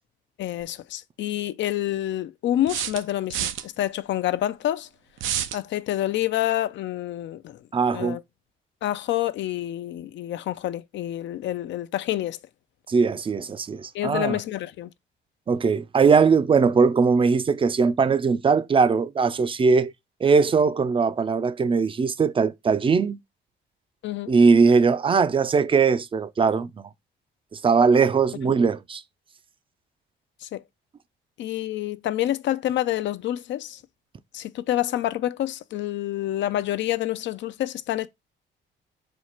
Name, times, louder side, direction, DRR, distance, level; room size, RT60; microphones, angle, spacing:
voice 1, 0.4-4.9 5.5-7.6 7.9-8.2 8.8-12.4 13.9-14.9 24.0-24.3 28.4-28.6 30.4-30.6 31.4-33.8 34.3-38.1, left 13 dB, 65° left, 0.4 m, -28 dB
sound 1, 0.6-0.7 2.7-3.6 5.2-5.6, right 10 dB, 80° right, 0.5 m, -28 dB
voice 2, 7.7-8.2 12.9-14.4 15.5-19.9 20.2-23.2 24.3-26.7 27.5-29.0, right 5 dB, 25° right, 0.4 m, -20 dB
4.4 x 2.4 x 4.3 m
cardioid pair, 90°, 20 cm